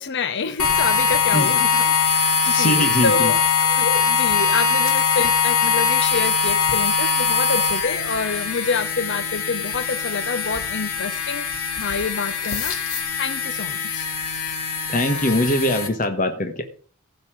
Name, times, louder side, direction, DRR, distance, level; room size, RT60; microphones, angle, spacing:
voice 1, 0.0-11.5 11.7-14.1, left 4 dB, 55° left, 10 dB, 0.7 m, -27 dB
sound 1, 0.6-15.9, left 6 dB, 90° left, 2.3 m, -22 dB
sound 2, 2.4-3.1 3.5-3.7 4.3-4.4 4.8-5.0 7.3-7.4 8.4-8.5 9.2-9.7 10.9-11.4 11.6-11.8 12.1-13.0, left 7 dB, 75° left, 2.4 m, -36 dB
voice 2, 2.4-3.3 14.9-16.6, left 1 dB, 35° left, 6 dB, 1.3 m, -22 dB
15.5 x 5.5 x 6.3 m, 0.44 s
head